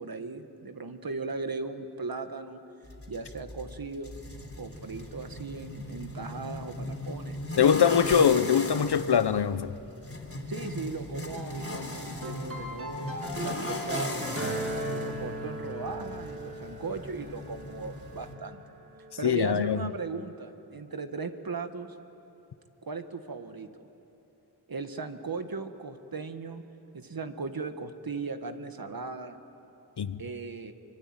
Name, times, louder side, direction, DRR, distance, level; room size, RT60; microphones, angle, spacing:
voice 1, 0.0-2.6 3.1-4.1 4.6-7.4 10.5-14.3 14.9-18.6 19.2-21.9 22.8-23.9 24.7-26.6 26.9-29.4 30.2-30.7, right 4 dB, 60° right, 8 dB, 1.7 m, -37 dB
sound 1, 2.8-18.3, left 1 dB, 35° left, 3.5 m, -38 dB
voice 2, 7.6-9.8 19.2-19.9 30.0-30.2, left 8 dB, 75° left, 14 dB, 0.9 m, -23 dB
sound 2, 11.1-19.4, right 1 dB, 35° right, 6.3 m, -38 dB
24.5 x 24.0 x 9.1 m, 2.9 s
wide cardioid pair, 65°, 40 cm